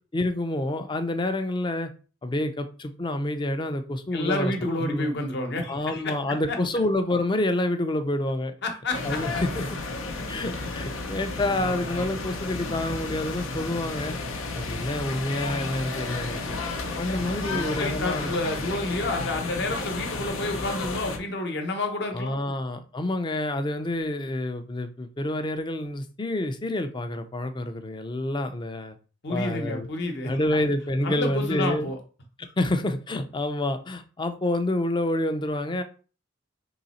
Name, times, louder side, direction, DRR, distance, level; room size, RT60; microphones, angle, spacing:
voice 1, 0.1-1.9 2.2-4.5 4.8-5.1 5.7-8.5 9.0-9.8 10.3-14.2 14.5-16.5 17.0-18.3 22.1-29.0 29.3-29.9 30.2-31.9 32.4-35.8, left 1 dB, 25° left, 8 dB, 0.5 m, -28 dB
voice 2, 4.1-6.1 6.5-6.6 8.6-9.2 17.0-17.1 17.5-22.3 29.2-30.3 31.0-32.0, left 2 dB, 60° left, 4 dB, 1.0 m, -29 dB
sound 1, 8.9-21.2, left 3 dB, 85° left, 0.7 m, -32 dB
3.9 x 3.1 x 4.1 m, 0.37 s
head